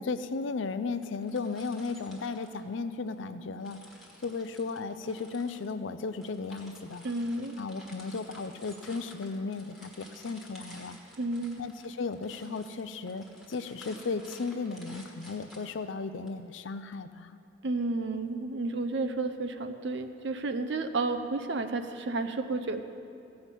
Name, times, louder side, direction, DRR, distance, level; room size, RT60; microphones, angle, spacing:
voice 1, 0.0-3.8 4.2-7.0 7.6-11.0 11.6-17.4, left 4 dB, 75° left, 11 dB, 0.5 m, -35 dB
sound 1, 0.9-3.2 3.6-16.3, equal, ahead, 1.5 m, -53 dB
voice 2, 7.0-7.6 11.2-11.7 17.6-22.8, right 3 dB, 65° right, 8 dB, 0.6 m, -31 dB
15.5 x 5.8 x 8.2 m, 2.7 s
head